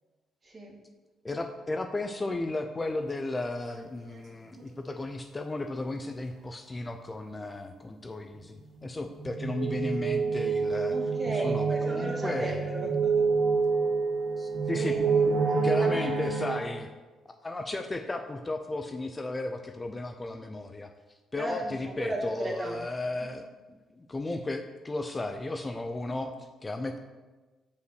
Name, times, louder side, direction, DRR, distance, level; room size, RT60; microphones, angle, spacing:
voice 1, 0.4-0.8 10.9-13.3 14.7-15.3 15.8-16.1 21.4-22.8 23.2-23.3, right 1 dB, 30° right, -1 dB, 1.8 m, -36 dB
voice 2, 1.2-11.0 11.3-12.7 14.4-15.0 15.6-16.9 17.3-20.9 21.3-27.0, left 2 dB, 20° left, 6 dB, 0.5 m, -34 dB
sound 1, 3.8-3.9 4.1-4.2 4.6-4.7 8.8-16.6, right 5 dB, 70° right, 1.1 m, -27 dB
5.5 x 5.0 x 6.3 m, 1.2 s
cardioid pair, 90°, 0 cm